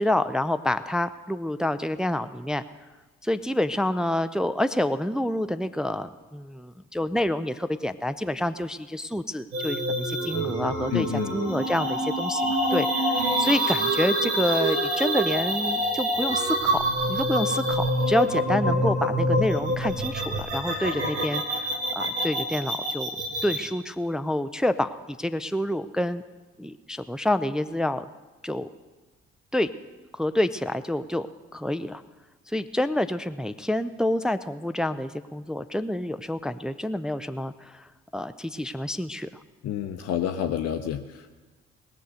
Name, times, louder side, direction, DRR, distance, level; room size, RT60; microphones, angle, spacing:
voice 1, 0.0-2.6 3.2-23.1 23.4-26.2 26.6-28.1 28.4-28.7 29.5-29.7 30.2-31.3 31.5-32.0 32.5-37.9 38.1-39.3, left 1 dB, ahead, 10 dB, 0.5 m, -28 dB
sound 1, 9.5-23.6, right 1 dB, 80° right, 1.5 m, -26 dB
voice 2, 10.9-11.3 39.6-41.3, left 10 dB, 50° left, 6 dB, 0.7 m, -29 dB
20.0 x 6.8 x 6.3 m, 1.3 s
figure-of-eight pair, 40°, 33 cm